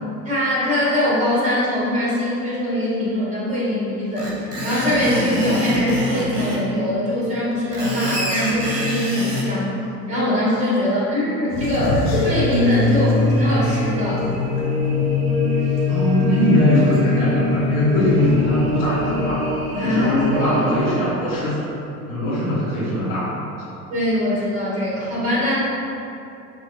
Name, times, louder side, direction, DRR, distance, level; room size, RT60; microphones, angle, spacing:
voice 1, 0.2-9.7 10.1-14.2 19.7-20.7 23.9-25.6, left 1 dB, 15° right, -7 dB, 1.2 m, -22 dB
Screech, 4.1-6.6 7.5-9.5, right 1 dB, 90° right, 0.8 m, -25 dB
Elevator second floor, 11.5-14.6 15.1-15.2 16.7-17.0, left 2 dB, 40° left, 0.8 m, -25 dB
sound 1, 12.2-21.0, left 3 dB, 45° right, 1.1 m, -22 dB
voice 2, 15.9-19.5 19.8-21.6 22.1-23.4, equal, 60° left, -9 dB, 1.4 m, -21 dB
5.7 x 2.7 x 2.8 m, 2.8 s
figure-of-eight pair, 80°, 47 cm